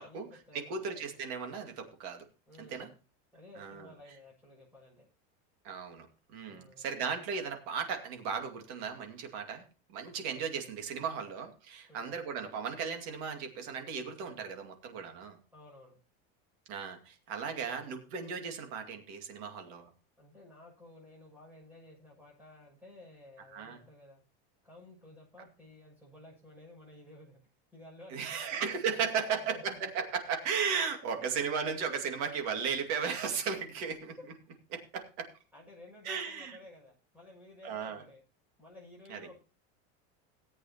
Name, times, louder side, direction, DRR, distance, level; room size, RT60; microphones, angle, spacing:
voice 1, 0.0-1.0 2.5-3.0 3.3-5.1 6.4-6.9 11.9-12.2 15.5-16.0 20.2-24.2 24.6-27.4 27.7-30.1 35.5-38.2 38.6-39.4, left 1 dB, 5° right, -3 dB, 6.7 m, -54 dB
voice 2, 0.5-2.2 2.7-2.9 3.6-3.9 5.6-9.6 9.9-15.4 16.7-19.9 23.5-23.8 28.1-34.2 34.7-35.3 36.0-36.6 37.6-38.0 39.1-39.3, right 6 dB, 50° right, 4 dB, 2.3 m, -36 dB
17.5 x 8.3 x 2.9 m, 0.36 s
cardioid pair, 175°, 32 cm